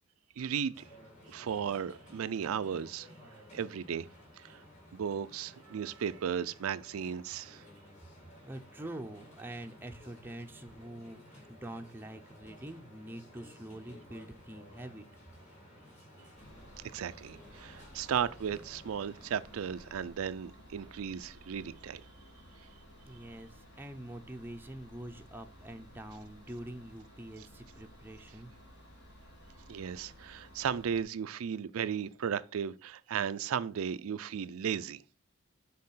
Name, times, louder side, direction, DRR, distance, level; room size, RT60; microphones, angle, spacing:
voice 1, 0.4-0.9 1.3-3.1 3.5-4.1 4.4-4.6 4.9-7.6 16.9-22.0 29.7-35.0, right 7 dB, 85° right, 0.4 m, -35 dB
sound 1, 0.7-20.0, equal, 35° left, 2.5 m, -55 dB
voice 2, 8.4-15.1 23.1-28.5, right 1 dB, 10° right, 0.6 m, -45 dB
sound 2, 16.4-31.0, equal, 50° left, 2.3 m, -55 dB
6.5 x 4.1 x 5.5 m
head